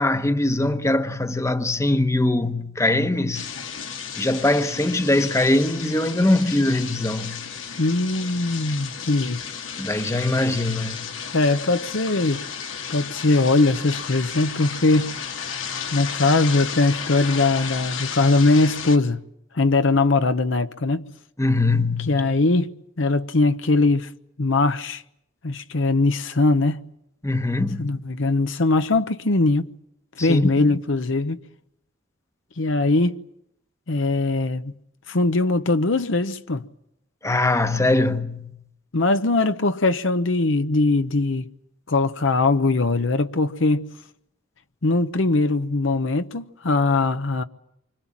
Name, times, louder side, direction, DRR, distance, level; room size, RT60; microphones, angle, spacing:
voice 1, 0.0-3.4 4.2-7.4 9.8-11.0 21.4-22.3 27.2-28.0 30.2-30.8 37.2-38.5, left 2 dB, 15° left, 1.1 m, -22 dB
sound 1, 3.3-19.0, left 7 dB, 85° left, 1.9 m, -33 dB
voice 2, 7.8-9.4 11.3-12.4 12.9-15.2 15.9-19.2 19.5-21.1 22.1-24.1 24.4-25.0 25.4-26.8 27.8-29.7 30.2-31.4 32.6-33.2 33.9-34.7 35.1-36.6 38.9-41.5 41.9-43.9 44.8-47.4, left 3 dB, 70° left, 0.9 m, -21 dB
27.5 x 25.0 x 7.4 m
head